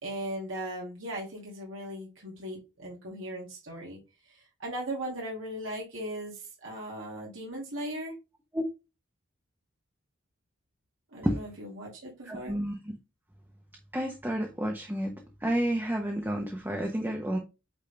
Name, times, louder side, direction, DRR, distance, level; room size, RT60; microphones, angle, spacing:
voice 1, 0.0-4.0 4.3-8.2 11.1-12.5, right 1 dB, 90° right, 2.4 m, -38 dB
voice 2, 12.3-12.7 13.9-15.1 15.4-17.4, equal, 10° right, 1.0 m, -30 dB
8.6 x 3.7 x 3.4 m
head